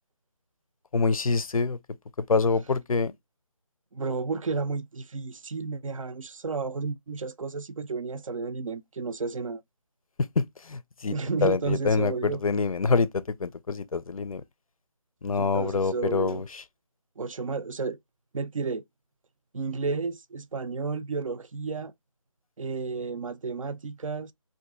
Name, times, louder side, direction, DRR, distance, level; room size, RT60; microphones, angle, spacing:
voice 1, 0.9-1.8 2.3-3.1 10.4-11.1 11.4-14.4 15.2-16.6, left 4 dB, 85° left, 0.5 m, -26 dB
voice 2, 3.9-9.6 11.1-12.4 15.3-16.4 17.2-18.0 18.3-18.8 19.5-21.9 22.6-24.3, right 4 dB, 70° right, 0.5 m, -32 dB
2.6 x 2.5 x 3.6 m
figure-of-eight pair, 170°, 17 cm